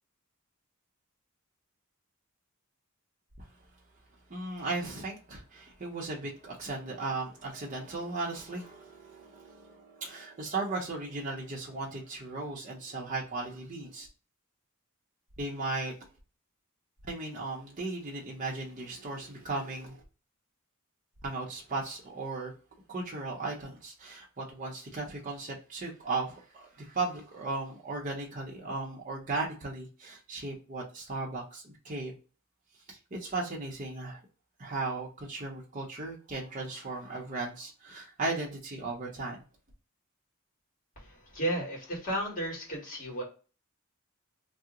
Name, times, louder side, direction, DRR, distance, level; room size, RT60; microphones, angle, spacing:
voice 1, 4.3-14.1 15.4-15.9 17.1-20.0 21.2-22.5 22.9-32.1 32.9-34.2 34.6-39.4, right 3 dB, 35° right, -3 dB, 0.6 m, -36 dB
voice 2, 40.9-43.2, right 1 dB, 40° left, -3 dB, 1.5 m, -34 dB
2.8 x 2.0 x 3.6 m, 0.36 s
head